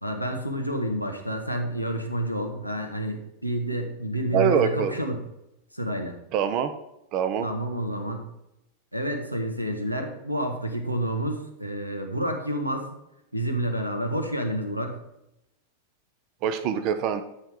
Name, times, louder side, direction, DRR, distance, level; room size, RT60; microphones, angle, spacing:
voice 1, 0.0-5.2 5.7-6.1 7.4-8.3 8.9-12.9 13.3-15.0, right 1 dB, 90° right, 5 dB, 1.5 m, -29 dB
voice 2, 4.3-4.9 6.3-6.7 7.1-7.5 16.4-17.2, right 8 dB, 40° right, 10 dB, 0.9 m, -24 dB
12.5 x 5.8 x 4.9 m, 0.86 s
figure-of-eight pair, 90°, 0 cm